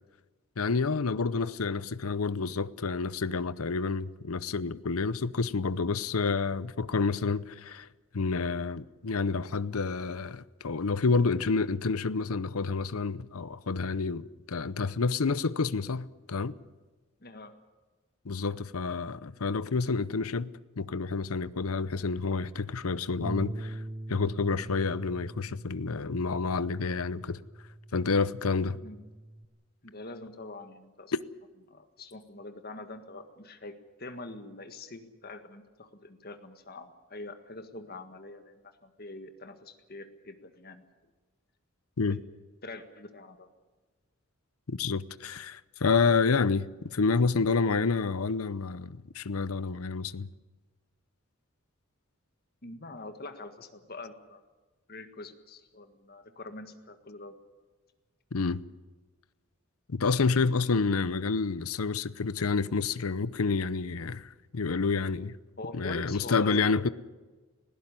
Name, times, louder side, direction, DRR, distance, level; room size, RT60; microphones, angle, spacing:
voice 1, 0.6-7.9 8.1-16.6 18.2-23.8 24.1-27.4 27.9-28.8 31.1-31.2 42.0-42.2 44.7-50.3 58.3-58.6 59.9-65.3 65.7-66.9, left 4 dB, 90° left, 0.7 m, -29 dB
voice 2, 17.2-17.5 28.7-29.0 29.8-31.1 31.7-40.8 42.6-43.5 52.6-54.4 54.9-57.3 65.6-66.8, left 2 dB, 45° left, 1.7 m, -44 dB
Bass guitar, 23.2-29.5, right 1 dB, 25° right, 1.2 m, -42 dB
19.5 x 16.5 x 9.9 m
head